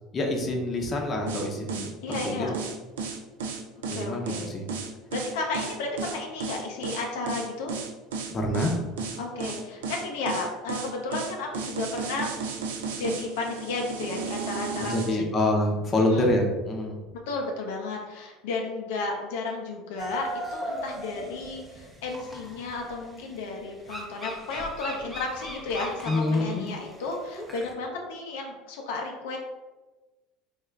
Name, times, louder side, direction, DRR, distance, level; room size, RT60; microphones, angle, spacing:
voice 1, 0.1-2.5 3.9-4.6 8.3-8.8 14.8-17.0 26.1-26.7, left 1 dB, 30° left, 1 dB, 0.7 m, -26 dB
sound 1, 1.3-15.1, right 5 dB, 90° right, 0.4 m, -34 dB
voice 2, 2.0-2.6 3.9-4.5 5.1-7.7 9.2-12.4 13.0-15.2 16.1-16.2 17.3-29.4, left 3 dB, 80° left, 1 dB, 0.5 m, -33 dB
sound 2, 20.0-27.7, right 1 dB, 5° right, 0.7 m, -39 dB
3.6 x 2.4 x 3.3 m, 1.2 s
supercardioid pair, 95°, 0 cm